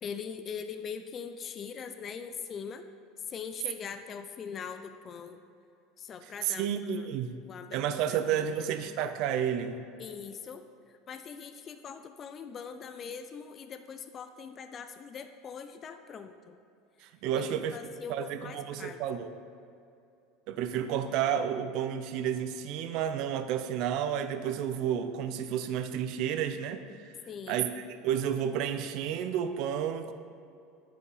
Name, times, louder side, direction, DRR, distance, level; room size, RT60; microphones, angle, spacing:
voice 1, 0.0-2.8 3.3-5.4 6.0-6.7 7.0-7.1 7.5-7.8 8.1-8.7 10.0-16.6 17.3-19.0 27.3-27.7, left 6 dB, 40° left, 8 dB, 0.4 m, -42 dB
voice 2, 6.4-7.4 7.7-9.8 17.0-17.8 18.1-19.3 20.5-27.1 27.5-30.1, right 9 dB, 60° right, 10 dB, 0.5 m, -31 dB
9.5 x 5.0 x 3.9 m, 2.5 s
hypercardioid pair, 90°, 0 cm